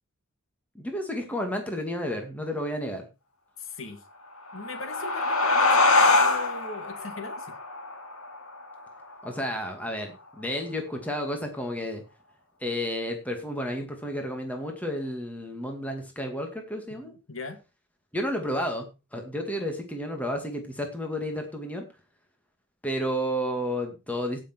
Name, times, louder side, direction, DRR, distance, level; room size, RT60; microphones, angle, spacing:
voice 1, 0.7-3.1 9.2-12.0 12.6-17.1 18.1-21.8 22.8-24.4, equal, 5° left, 2.2 m, -31 dB
voice 2, 3.6-4.0 4.5-7.5 17.0-17.6, left 3 dB, 70° left, 2.0 m, -39 dB
sound 1, 4.4-9.5, left 3 dB, 90° left, 2.4 m, -24 dB
16.5 x 6.7 x 4.6 m
head